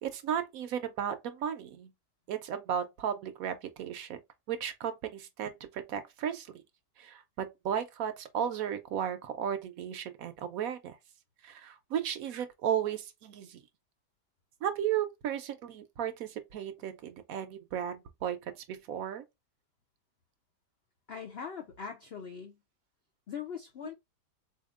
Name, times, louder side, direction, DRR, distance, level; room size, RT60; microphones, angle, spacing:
voice 1, 0.0-1.9 2.3-4.2 4.5-6.5 7.0-11.0 11.4-13.6 14.6-18.4 18.7-19.2, right 9 dB, 70° right, 0.9 m, -34 dB
voice 2, 21.1-22.6 23.3-23.9, left 7 dB, 70° left, 0.5 m, -41 dB
4.0 x 2.8 x 2.4 m
omnidirectional pair, 1.8 m